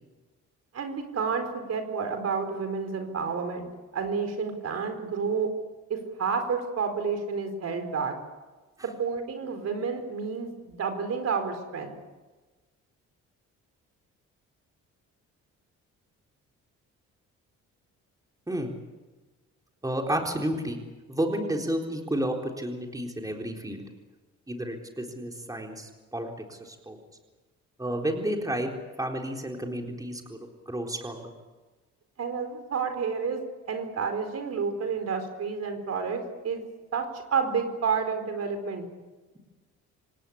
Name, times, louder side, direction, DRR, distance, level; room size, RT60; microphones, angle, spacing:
voice 1, 0.7-5.5 5.9-8.1 9.0-12.0 32.2-33.4 33.7-36.6 36.9-38.9, right 5 dB, 55° right, 6 dB, 4.5 m, -30 dB
voice 2, 19.8-20.8 21.1-23.9 24.5-27.0 27.8-28.7 29.0-30.4 30.7-31.3, right 1 dB, 10° right, 2 dB, 4.0 m, -31 dB
26.5 x 18.5 x 8.6 m, 1.2 s
cardioid pair, 90°, 30 cm